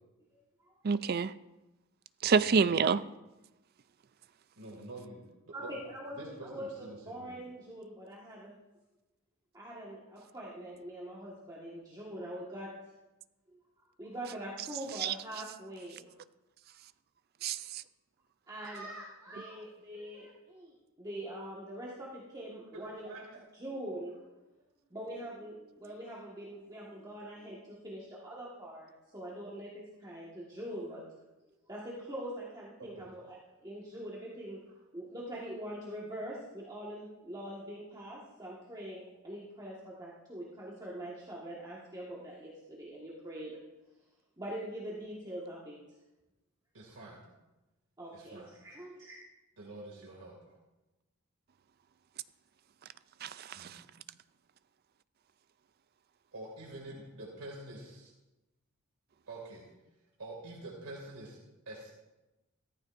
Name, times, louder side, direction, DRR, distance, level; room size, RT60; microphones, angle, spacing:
voice 1, 0.8-1.3 2.2-3.0 15.0-15.1 17.4-17.8 53.2-53.8, right 5 dB, 45° right, 15 dB, 0.4 m, -28 dB
voice 2, 2.2-2.8 4.6-5.8 6.2-7.4 16.1-16.2 22.7-23.3 32.8-33.1 46.7-47.2 48.1-48.5 49.6-50.6 53.5-53.8 56.3-58.1 59.3-59.6 60.2-61.4 61.7-61.9, right 2 dB, 80° right, -3 dB, 2.4 m, -47 dB
voice 3, 5.5-8.5 9.5-12.7 13.5-13.6 14.0-16.1 18.5-23.1 23.5-24.4 24.9-31.0 31.5-34.6 34.9-43.6 44.4-45.8 48.0-49.2, right 1 dB, 20° right, -6 dB, 1.6 m, -43 dB
15.0 x 14.0 x 2.6 m, 1.0 s
head